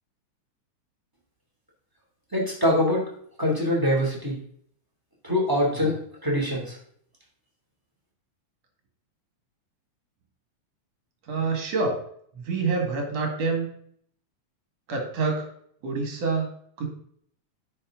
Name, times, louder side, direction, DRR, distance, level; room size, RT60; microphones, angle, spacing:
voice 1, 2.3-3.1 3.4-4.4 5.2-6.8, left 1 dB, 5° right, -4 dB, 2.3 m, -24 dB
voice 2, 11.3-12.0 12.3-13.7 14.9-15.5 15.8-16.5 16.8-16.9, right 4 dB, 60° right, 2 dB, 2.8 m, -26 dB
9.8 x 5.7 x 3.8 m, 0.64 s
omnidirectional pair, 3.4 m